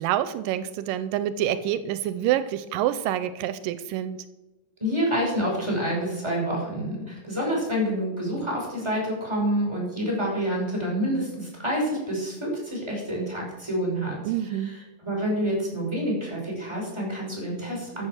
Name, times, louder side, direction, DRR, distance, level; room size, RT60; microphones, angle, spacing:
voice 1, 0.0-4.2 14.2-14.8, right 11 dB, 90° right, 12 dB, 2.3 m, -27 dB
voice 2, 4.8-14.2 15.0-18.1, equal, 5° right, -3 dB, 5.4 m, -27 dB
14.0 x 7.7 x 6.4 m, 1.1 s
omnidirectional pair, 3.9 m